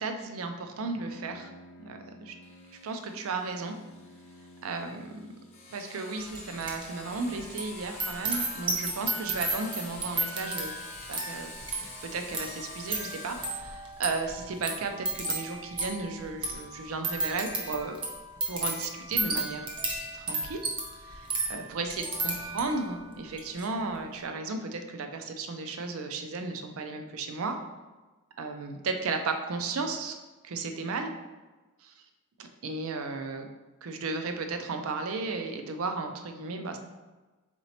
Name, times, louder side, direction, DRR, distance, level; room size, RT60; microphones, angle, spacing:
voice 1, 0.0-1.5 1.8-2.3 2.8-3.7 4.6-5.3 5.7-10.7 11.1-11.5 12.0-18.0 18.5-19.7 20.1-20.6 21.0-27.6 28.4-30.1 30.4-31.1 31.8-31.9 32.4-33.5 33.8-36.8, right 3 dB, 70° right, 5 dB, 0.5 m, -34 dB
Bowed string instrument, 0.7-5.8, left 1 dB, 85° left, 0.4 m, -53 dB
Sawing, 2.4-17.9, left 3 dB, 30° left, 0.7 m, -48 dB
sound 1, 6.3-6.9 7.1-22.9 23.3-23.6, right 2 dB, 20° right, 0.5 m, -34 dB
4.4 x 3.9 x 2.8 m, 1.2 s
head